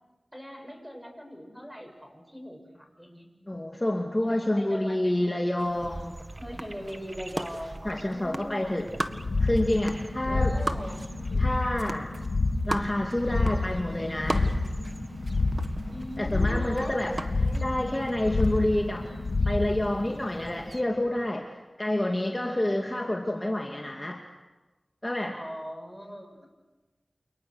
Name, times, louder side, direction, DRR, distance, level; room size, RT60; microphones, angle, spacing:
voice 1, 0.3-3.3 4.3-5.1 6.4-8.8 10.3-11.5 13.2-13.6 15.9-17.0 17.2-17.7 22.0-23.2 25.3-26.5, equal, 5° right, 4 dB, 7.7 m, -41 dB
voice 2, 3.5-6.2 7.8-8.9 9.4-10.5 11.4-12.1 12.7-14.5 16.2-17.1 17.6-19.1 19.5-21.4 21.8-24.2 25.0-25.3, left 1 dB, 25° left, 1 dB, 2.6 m, -28 dB
sound 1, 5.6-20.8, right 2 dB, 40° right, 1.7 m, -39 dB
sound 2, 9.1-20.9, left 2 dB, 90° left, 6.2 m, -29 dB
29.5 x 28.0 x 6.5 m, 1.2 s
wide cardioid pair, 45°, 0 cm